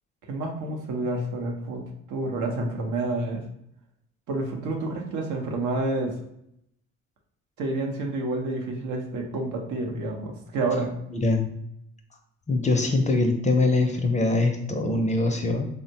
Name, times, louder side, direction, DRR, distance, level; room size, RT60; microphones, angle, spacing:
voice 1, 0.3-3.4 4.3-6.1 7.6-10.9, right 2 dB, 80° right, 1 dB, 0.7 m, -29 dB
voice 2, 11.1-11.4 12.5-15.7, left 2 dB, 25° left, 4 dB, 0.4 m, -23 dB
3.4 x 2.1 x 2.7 m, 0.75 s
cardioid pair, 90°, 30 cm